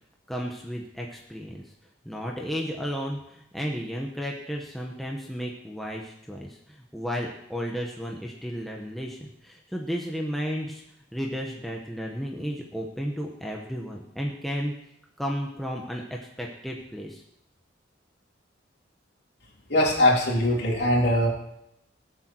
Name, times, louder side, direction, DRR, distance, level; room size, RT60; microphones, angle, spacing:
voice 1, 0.3-1.6 2.0-10.8 11.1-14.7 15.2-17.2, equal, ahead, -1 dB, 1.3 m, -33 dB
voice 2, 19.7-21.3, left 1 dB, 55° left, -2 dB, 3.6 m, -21 dB
21.0 x 8.2 x 4.6 m, 0.78 s
head